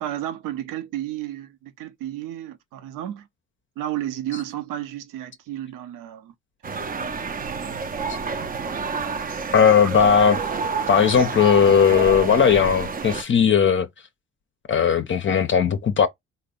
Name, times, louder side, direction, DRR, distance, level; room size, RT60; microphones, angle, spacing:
voice 1, 0.0-3.3 3.8-6.3 9.8-10.0, right 13 dB, 70° right, 0.8 m, -32 dB
sound 1, 6.6-13.2, right 5 dB, 25° right, 0.6 m, -29 dB
voice 2, 9.5-10.4 10.9-13.9 14.7-16.1, left 7 dB, 35° left, 0.6 m, -17 dB
3.2 x 2.2 x 3.6 m
hypercardioid pair, 55°, 34 cm